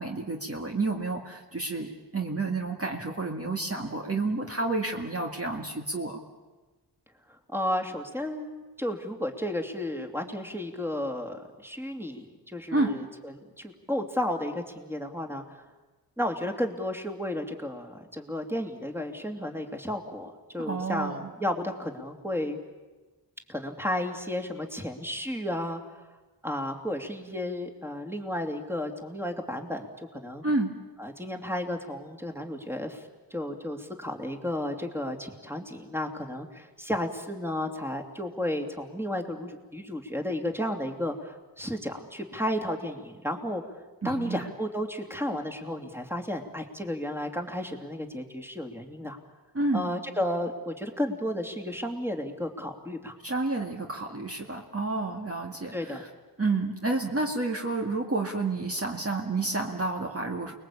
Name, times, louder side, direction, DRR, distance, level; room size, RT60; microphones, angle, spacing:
voice 1, 0.0-6.2 12.7-13.0 20.6-21.3 30.4-30.7 44.0-44.5 49.5-49.8 53.2-56.1 56.4-60.5, right 3 dB, 35° right, 1 dB, 2.0 m, -30 dB
voice 2, 7.3-15.6 16.2-22.6 23.5-25.8 26.4-30.4 31.0-43.6 44.0-49.2 49.7-53.1 55.7-56.0, left 1 dB, 5° right, 4 dB, 2.8 m, -33 dB
29.0 x 21.0 x 8.6 m, 1.2 s
wide cardioid pair, 75°, 41 cm